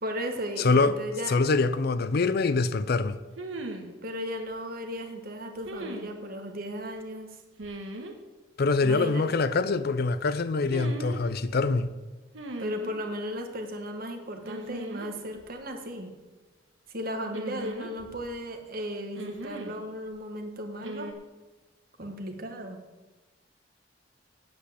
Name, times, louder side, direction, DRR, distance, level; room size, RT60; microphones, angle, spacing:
voice 1, 0.0-1.3 4.0-7.4 8.8-9.3 12.6-16.1 16.9-21.1 22.0-22.8, equal, 50° right, 1.5 m, -35 dB
voice 2, 0.6-1.0 1.3-3.2 8.6-11.9, left 3 dB, 55° left, 0.5 m, -24 dB
sound 1, 1.4-1.5 3.4-3.9 5.6-6.1 7.6-8.1 10.6-11.2 12.3-13.0 14.4-15.1 15.4-15.5 17.3-18.3 19.2-19.8 20.8-21.1, right 2 dB, 80° right, 1.4 m, -38 dB
8.6 x 8.3 x 7.8 m
head